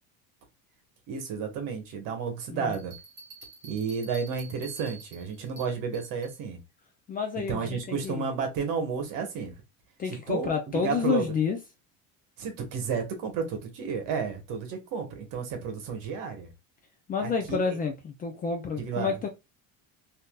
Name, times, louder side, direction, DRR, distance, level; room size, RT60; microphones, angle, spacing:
voice 1, 1.1-2.9 3.6-6.6 7.5-9.5 10.1-11.3 12.4-16.5 17.2-17.8 18.8-19.2, right 5 dB, 55° right, 1.3 m, -32 dB
Bell, 2.7-6.4, right 3 dB, 30° right, 1.5 m, -48 dB
voice 2, 7.1-8.3 10.0-11.6 17.1-19.3, left 6 dB, 25° left, 0.4 m, -29 dB
3.6 x 2.7 x 2.3 m
cardioid pair, 150°, 37 cm